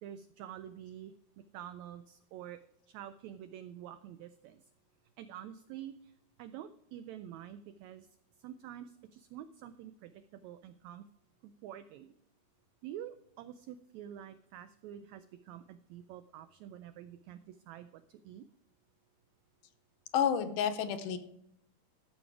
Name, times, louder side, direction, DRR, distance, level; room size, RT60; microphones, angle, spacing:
voice 1, 0.0-1.1 1.5-2.6 2.9-4.6 5.2-6.1 6.4-8.1 8.4-11.0 11.4-12.1 12.8-18.4, right 10 dB, 90° right, 12 dB, 1.6 m, -47 dB
voice 2, 20.1-21.2, left 8 dB, 80° left, 8 dB, 2.4 m, -30 dB
13.5 x 6.2 x 4.8 m, 0.77 s
omnidirectional pair, 3.7 m